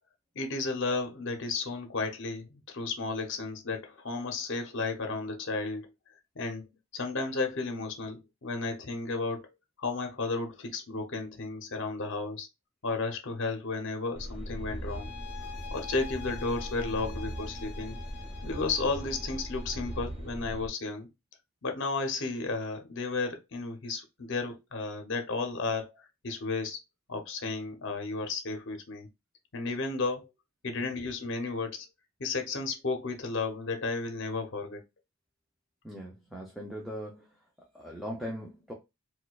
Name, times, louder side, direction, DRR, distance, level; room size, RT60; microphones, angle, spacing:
voice 1, 0.3-5.9 6.4-6.6 6.9-9.4 9.8-12.5 12.8-15.1 15.7-18.0 18.4-21.1 21.6-26.8 27.1-29.1 29.5-30.3 30.6-31.9 32.2-34.8, left 3 dB, 55° left, 0.7 m, -33 dB
sound 1, 14.1-20.7, equal, 25° right, 0.9 m, -39 dB
sound 2, 14.9-20.1, left 8 dB, 90° left, 0.4 m, -47 dB
voice 2, 35.8-37.4 37.7-38.7, equal, ahead, 0.5 m, -40 dB
4.3 x 2.2 x 2.3 m
head